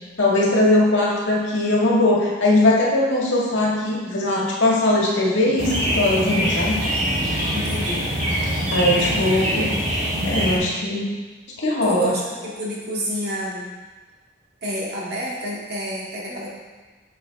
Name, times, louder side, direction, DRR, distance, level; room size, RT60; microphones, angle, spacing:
voice 1, 0.2-6.8 7.2-7.3 8.7-9.7 10.2-11.1 11.6-12.1, left 1 dB, 85° left, -4 dB, 1.8 m, -20 dB
sound 1, 5.6-10.6, equal, 40° right, 2.5 m, -23 dB
voice 2, 7.5-8.1 9.0-9.3 11.8-13.7 14.6-16.5, equal, 60° right, -5 dB, 2.0 m, -29 dB
8.7 x 6.4 x 3.5 m, 1.3 s
head